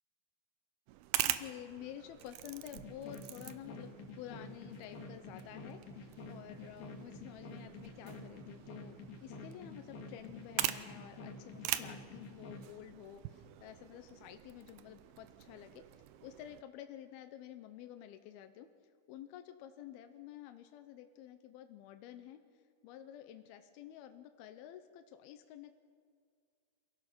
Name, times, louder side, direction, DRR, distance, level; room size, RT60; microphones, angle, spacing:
sound 1, 0.9-16.6, right 14 dB, 80° right, 2.5 m, -43 dB
voice 1, 1.2-15.8 16.2-18.7 19.1-22.4 22.8-25.7, left 11 dB, 80° left, 8 dB, 2.6 m, -50 dB
sound 2, 2.7-12.7, left 3 dB, 55° left, 2.9 m, -49 dB
27.5 x 16.0 x 6.0 m, 2.1 s
omnidirectional pair, 4.6 m